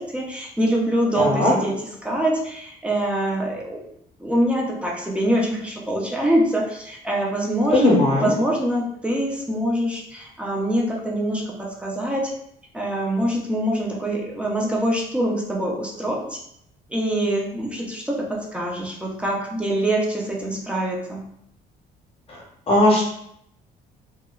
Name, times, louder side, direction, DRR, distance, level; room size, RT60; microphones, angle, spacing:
voice 1, 0.0-3.8 4.2-7.9 8.2-12.3 12.7-16.4 16.9-21.2, right 1 dB, 5° right, -1 dB, 0.6 m, -24 dB
voice 2, 1.1-1.5 7.7-8.3 22.3-22.4 22.7-23.1, left 1 dB, 35° left, -2 dB, 0.8 m, -18 dB
2.9 x 2.2 x 2.3 m, 0.72 s
cardioid pair, 110°, 17 cm